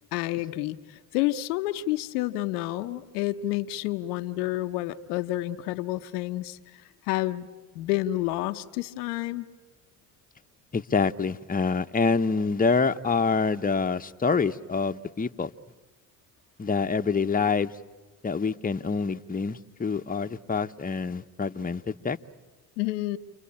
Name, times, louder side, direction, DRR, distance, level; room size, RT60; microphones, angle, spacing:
voice 1, 0.1-7.5 7.7-9.5 22.8-23.2, left 16 dB, 85° left, 0.9 m, -29 dB
voice 2, 10.7-15.5 16.6-17.7 18.2-22.2, left 5 dB, 20° left, 0.9 m, -26 dB
29.5 x 23.0 x 8.6 m
hypercardioid pair, 55°, 44 cm